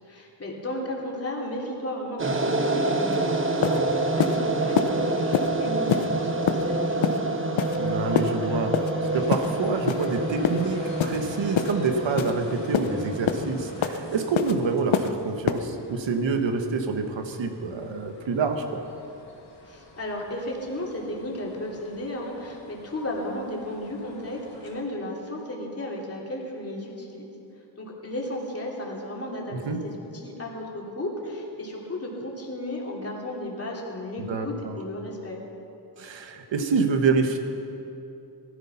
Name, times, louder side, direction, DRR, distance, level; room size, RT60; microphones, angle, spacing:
voice 1, 0.0-7.5 19.6-27.3 27.8-35.4, left 1 dB, 30° left, -3 dB, 3.0 m, -34 dB
sound 1, 2.2-14.5, right 2 dB, 25° right, 1.0 m, -28 dB
sound 2, 3.1-3.2 3.6-3.8 4.2-4.4 4.8-4.9 5.3-5.5 5.9-6.1 6.5-6.6 7.0-7.2 7.6-7.8 8.2-8.3 8.7-8.9 9.3-9.5 9.9-10.1 10.4-10.6 11.0-11.2 11.6-11.7 12.2-12.3 12.7-12.9 13.3-13.4 13.8-14.0 14.4-14.5 14.9-15.1 15.5-15.6, left 8 dB, 90° left, 1.0 m, -24 dB
sound 3, 7.6-24.8, left 3 dB, 70° left, 2.7 m, -46 dB
voice 2, 7.7-8.8 9.1-18.8 29.5-29.8 34.2-34.8 36.0-37.4, right 4 dB, 75° right, 6 dB, 1.5 m, -27 dB
18.5 x 13.0 x 5.8 m, 2.9 s
wide cardioid pair, 140°, 45 cm